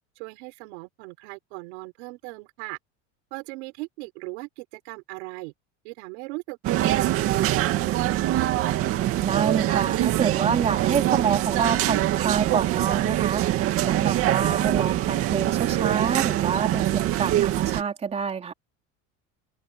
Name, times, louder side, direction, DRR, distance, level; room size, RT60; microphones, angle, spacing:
voice 1, 0.2-2.8 3.3-5.5 5.8-8.3, right 26 dB, 80° right, 5.1 m, -39 dB
sound 1, 6.6-17.8, right 14 dB, 40° right, 2.3 m, -24 dB
voice 2, 9.2-18.5, right 6 dB, 20° right, 3.6 m, -27 dB
open air
cardioid pair, 165°, 33 cm